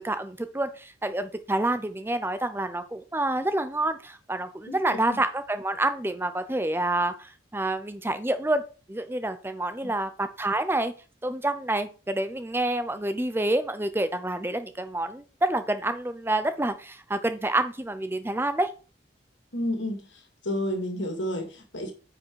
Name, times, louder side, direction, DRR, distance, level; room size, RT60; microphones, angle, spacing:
voice 1, 0.0-8.6 8.9-10.9 11.2-18.7, right 1 dB, 10° right, 0.5 m, -28 dB
voice 2, 19.5-21.9, left 1 dB, 75° left, 2.3 m, -31 dB
9.3 x 4.9 x 4.6 m
head